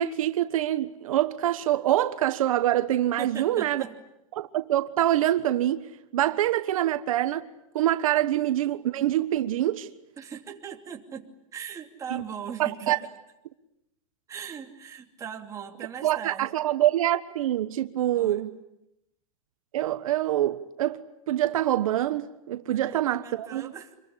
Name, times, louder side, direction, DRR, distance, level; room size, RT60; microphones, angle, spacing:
voice 1, 0.0-3.8 4.4-5.9 6.1-7.5 7.7-9.9 12.1-12.2 12.6-13.0 16.0-18.6 19.7-21.0 21.3-23.7, right 13 dB, 75° right, 1.3 m, -25 dB
voice 2, 3.2-4.0 10.2-13.1 14.3-16.5 18.1-18.4 22.7-24.0, right 7 dB, 20° right, 2.9 m, -40 dB
27.0 x 22.5 x 9.9 m
supercardioid pair, 155°, 18 cm